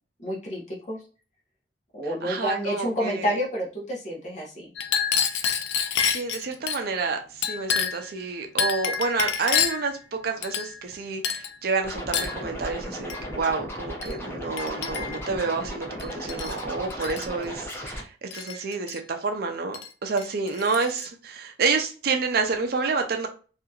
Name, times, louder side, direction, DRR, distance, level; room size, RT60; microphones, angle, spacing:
voice 1, 0.2-1.0 1.9-4.7, equal, 40° left, -4 dB, 0.9 m, -29 dB
voice 2, 2.2-3.3 6.0-23.3, right 4 dB, 55° right, 5 dB, 0.5 m, -29 dB
Chink clink, 4.8-6.8 7.4-8.1 8.6-9.9 10.4-10.9 11.2-11.5 12.1-12.4 13.1-13.3 14.0-14.2 14.6-15.3 16.0-16.6 16.9-17.3 18.3-19.0 19.7-19.9 20.2-21.1, left 7 dB, 75° left, 0.4 m, -28 dB
Scratching (performance technique), 11.8-18.0, equal, 15° left, 0.7 m, -36 dB
2.8 x 2.4 x 2.3 m, 0.36 s
head